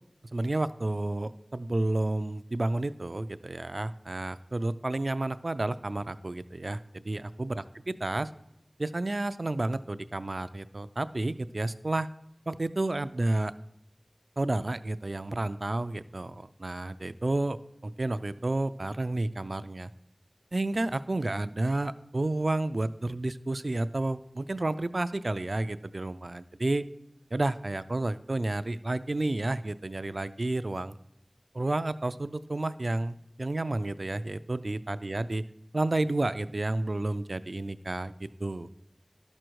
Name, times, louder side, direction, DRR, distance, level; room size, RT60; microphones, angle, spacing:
voice 1, 0.3-8.3 8.8-12.1 12.5-13.5 14.4-17.6 17.8-19.9 20.5-26.9 27.3-30.9 31.5-35.4 35.7-38.1 38.4-38.7, right 2 dB, 75° right, 13 dB, 0.4 m, -31 dB
12.0 x 6.4 x 4.6 m, 0.79 s
wide cardioid pair, 40°, 0 cm